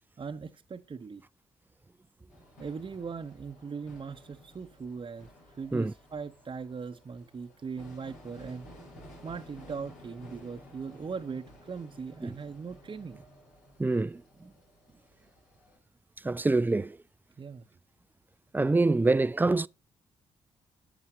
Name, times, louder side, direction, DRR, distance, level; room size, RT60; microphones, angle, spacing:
voice 1, 0.2-1.2 2.6-5.3 5.6-8.7 9.2-13.2 17.4-17.7, right 5 dB, 40° right, 0.8 m, -39 dB
sound 1, 2.3-15.8, equal, 80° left, 5.0 m, -54 dB
voice 2, 13.8-14.2 16.2-17.0 18.5-19.7, right 3 dB, 15° right, 0.4 m, -25 dB
11.0 x 7.6 x 2.8 m
hypercardioid pair, 45°, 14 cm